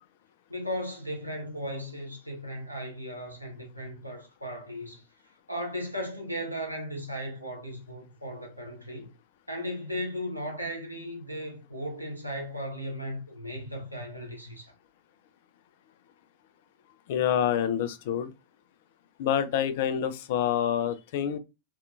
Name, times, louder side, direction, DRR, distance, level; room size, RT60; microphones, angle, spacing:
voice 1, 0.5-5.0 5.5-9.1 9.5-14.7, equal, 90° right, 0.7 m, -36 dB
voice 2, 17.1-18.3 19.2-21.4, left 9 dB, 50° left, 0.3 m, -27 dB
2.6 x 2.3 x 2.4 m
figure-of-eight pair, 90°, 0 cm